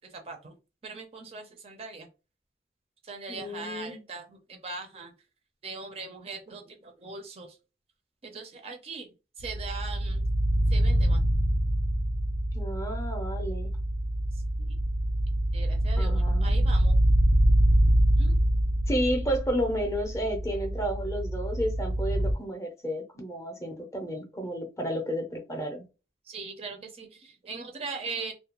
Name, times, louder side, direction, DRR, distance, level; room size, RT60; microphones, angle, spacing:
voice 1, 0.8-2.1 3.1-5.1 5.6-7.5 8.2-9.1 9.4-10.2 10.7-11.2 15.5-16.9 18.2-18.4 26.3-28.3, right 4 dB, 35° right, 0.4 m, -40 dB
voice 2, 3.3-4.0 12.5-13.7 16.0-16.7 18.9-25.8, equal, 15° left, 0.5 m, -32 dB
sound 1, 9.4-22.3, right 1 dB, 65° left, 0.5 m, -25 dB
2.3 x 2.1 x 2.9 m
head